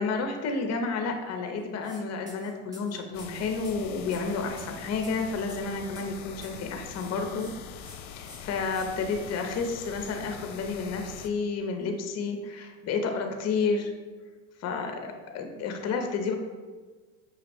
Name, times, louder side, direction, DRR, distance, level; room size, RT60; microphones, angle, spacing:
voice 1, 0.0-7.5 7.8-13.9 14.6-16.3, left 4 dB, 35° left, 4 dB, 0.7 m, -31 dB
sound 1, 1.8-2.0 2.3-6.7 6.9-7.5 7.8-8.0 8.3-8.9, left 1 dB, 10° right, 0.9 m, -50 dB
sound 2, 3.1-11.3, left 7 dB, 75° left, 0.6 m, -43 dB
6.1 x 2.4 x 3.4 m, 1.4 s
supercardioid pair, 105°, 43 cm